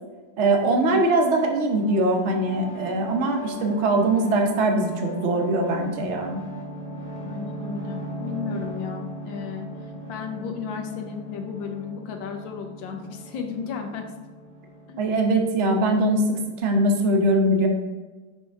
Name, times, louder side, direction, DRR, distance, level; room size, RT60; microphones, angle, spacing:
voice 1, 0.4-6.4 15.0-17.7, right 1 dB, 50° right, 2 dB, 0.9 m, -22 dB
sound 1, 1.2-16.6, right 1 dB, 30° left, 1.7 m, -38 dB
voice 2, 7.1-14.1 14.9-15.0, left 6 dB, 80° left, 4 dB, 1.5 m, -34 dB
5.7 x 5.4 x 3.4 m, 1.3 s
omnidirectional pair, 2.0 m